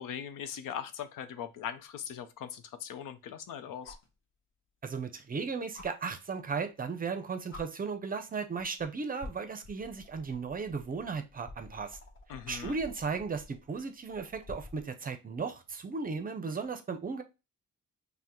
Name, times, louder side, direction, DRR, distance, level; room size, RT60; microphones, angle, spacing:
voice 1, 0.0-4.0 12.3-12.8, left 8 dB, 85° left, 0.6 m, -40 dB
sound 1, 1.6-1.7 3.8-4.1 5.7-5.9 7.0-7.1 7.5-7.6 8.6-8.8 9.2-14.9 16.5-16.6, left 2 dB, 40° left, 1.0 m, -49 dB
voice 2, 4.8-12.0 12.5-17.2, right 5 dB, 30° right, 0.5 m, -36 dB
5.4 x 2.1 x 2.9 m
cardioid pair, 135°, 32 cm